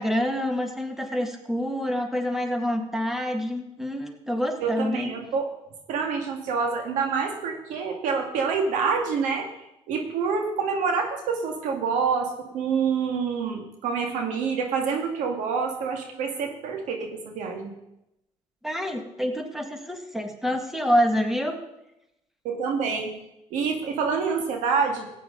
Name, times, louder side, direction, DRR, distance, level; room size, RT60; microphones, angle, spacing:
voice 1, 0.0-5.1 18.6-21.6, equal, 5° right, 4 dB, 2.1 m, -27 dB
voice 2, 4.6-5.5 5.9-9.5 9.9-17.7 22.4-23.1 23.5-25.2, right 5 dB, 90° right, 3 dB, 2.1 m, -27 dB
15.5 x 9.1 x 4.0 m, 0.88 s
supercardioid pair, 70°, 12 cm